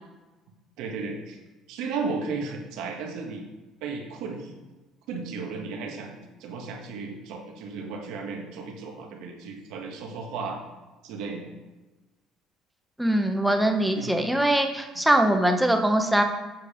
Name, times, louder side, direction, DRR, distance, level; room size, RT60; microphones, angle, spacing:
voice 1, 0.8-1.4 1.7-3.4 3.8-4.5 5.1-10.6 11.0-11.5 13.9-14.2, right 4 dB, 80° right, 2 dB, 1.5 m, -34 dB
voice 2, 13.0-16.2, right 1 dB, 5° right, 4 dB, 0.8 m, -22 dB
7.7 x 5.2 x 5.1 m, 1.1 s
cardioid pair, 135°, 0 cm